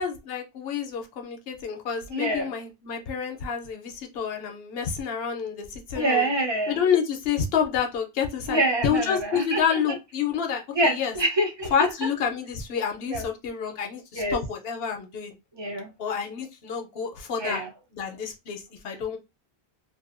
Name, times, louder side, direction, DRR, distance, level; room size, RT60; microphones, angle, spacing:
voice 1, 0.0-6.3 6.7-11.1 11.7-15.3 16.0-17.6 17.9-19.2, left 7 dB, 65° left, 0.8 m, -28 dB
voice 2, 2.1-2.5 5.9-6.8 8.5-9.6 10.7-11.7 13.1-13.2 14.1-14.4 15.5-15.9 17.4-17.7, right 1 dB, 35° right, 0.5 m, -25 dB
2.7 x 2.1 x 2.4 m
omnidirectional pair, 1.1 m